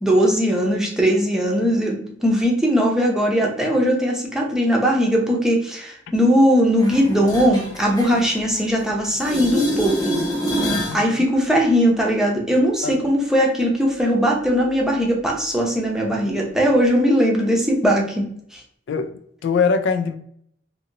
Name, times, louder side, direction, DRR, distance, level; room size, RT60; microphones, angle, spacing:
voice 1, 0.0-10.2 10.9-18.3 18.5-18.6, equal, 5° right, -2 dB, 0.6 m, -19 dB
sound 1, 6.8-8.8 9.1-11.0 16.8-16.9, equal, 20° left, 1.0 m, -26 dB
voice 2, 10.9-11.2 12.8-12.9 18.9-19.1 19.4-20.2, left 5 dB, 75° left, 8 dB, 0.3 m, -22 dB
2.8 x 2.8 x 2.5 m, 0.67 s
head